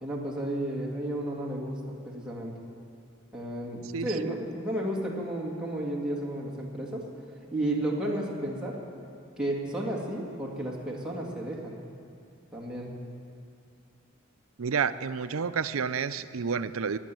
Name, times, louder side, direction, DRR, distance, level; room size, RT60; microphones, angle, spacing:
voice 1, 0.0-1.8 2.0-2.5 3.3-7.0 7.5-8.8 9.4-11.8 12.5-12.9, right 1 dB, 5° right, -3 dB, 2.2 m, -32 dB
voice 2, 3.9-4.3 14.6-17.0, right 6 dB, 75° right, 13 dB, 0.5 m, -30 dB
17.0 x 9.7 x 7.7 m, 2.5 s
head